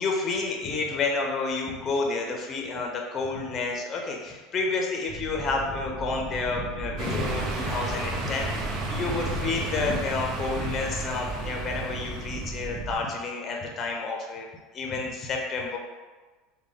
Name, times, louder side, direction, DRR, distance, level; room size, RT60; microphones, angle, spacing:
voice 1, 0.0-14.5 14.7-15.8, left 3 dB, 40° left, 1 dB, 0.6 m, -30 dB
sound 1, 5.1-13.0, right 3 dB, 35° right, 1.2 m, -36 dB
sound 2, 7.0-12.7, right 2 dB, 55° right, 0.7 m, -34 dB
3.5 x 2.2 x 3.5 m, 1.3 s
hypercardioid pair, 80°, 0 cm